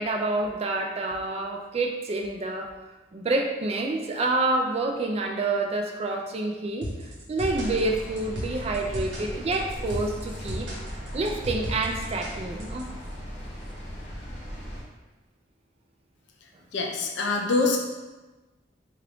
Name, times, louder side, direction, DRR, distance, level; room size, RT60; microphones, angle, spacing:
voice 1, 0.0-2.7 3.1-10.7 11.1-12.9, right 2 dB, 35° right, 3 dB, 0.3 m, -28 dB
sound 1, 6.8-12.8, equal, 80° right, 1.0 m, -36 dB
sound 2, 7.4-14.8, equal, 40° left, 1.1 m, -38 dB
voice 2, 16.7-17.8, left 3 dB, 75° left, 1 dB, 0.5 m, -24 dB
3.4 x 2.4 x 3.5 m, 1.1 s
head